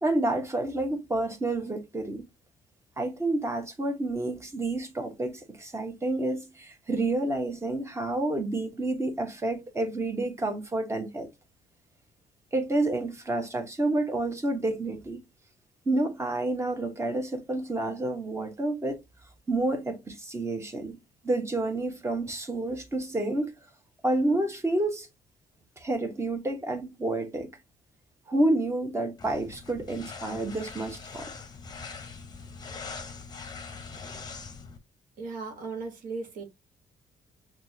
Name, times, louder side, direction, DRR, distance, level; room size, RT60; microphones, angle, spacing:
voice 1, 0.0-2.2 3.0-11.3 12.5-15.2 15.8-19.0 19.5-20.9 21.2-23.5 24.0-25.1 25.8-27.5 28.3-31.2, right 2 dB, 20° right, 1.2 m, -29 dB
sound 1, 29.2-34.8, left 4 dB, 30° left, 0.8 m, -42 dB
voice 2, 35.2-36.4, right 4 dB, 70° right, 1.4 m, -36 dB
5.9 x 2.4 x 2.8 m
cardioid pair, 100°, 14 cm